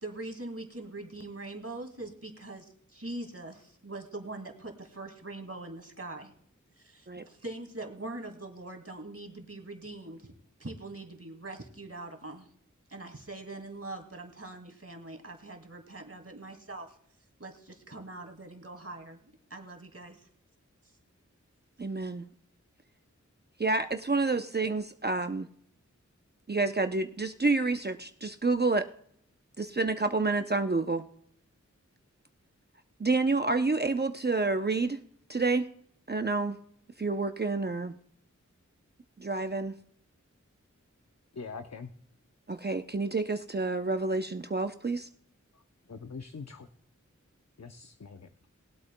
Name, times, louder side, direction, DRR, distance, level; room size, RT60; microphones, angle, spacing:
voice 1, 0.0-6.3 6.8-10.3 10.6-12.5 12.9-17.0 17.4-20.3, right 2 dB, 50° right, 4 dB, 2.0 m, -42 dB
voice 2, 21.8-22.3 23.6-25.5 26.5-28.9 29.6-31.0 33.0-35.0 35.3-35.7 36.1-36.6 37.0-37.9 39.2-39.7 42.5-45.1, right 3 dB, 35° right, 7 dB, 0.6 m, -29 dB
voice 3, 41.3-41.9 45.5-45.6 45.9-46.7 47.6-48.3, left 4 dB, 60° left, 8 dB, 0.7 m, -43 dB
21.0 x 8.2 x 2.2 m, 0.68 s
wide cardioid pair, 40°, 31 cm